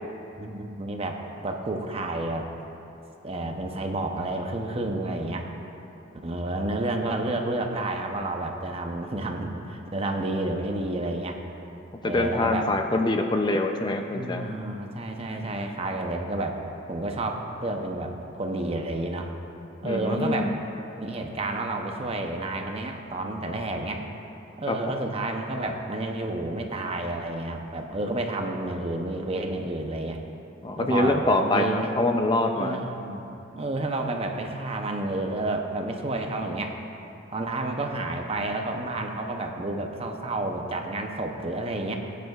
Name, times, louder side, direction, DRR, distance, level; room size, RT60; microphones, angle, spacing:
voice 1, 0.4-2.5 3.2-5.5 6.2-11.4 12.0-12.7 14.1-16.6 16.9-19.3 19.8-20.5 21.0-24.1 24.6-30.2 30.8-31.9 32.6-33.2 33.5-36.8 37.3-42.0, right 2 dB, 30° right, 3 dB, 0.7 m, -30 dB
voice 2, 12.1-14.5 19.8-20.5 24.7-24.8 30.6-32.8, left 2 dB, 20° left, 4 dB, 0.4 m, -24 dB
17.0 x 9.3 x 2.4 m, 3.0 s
head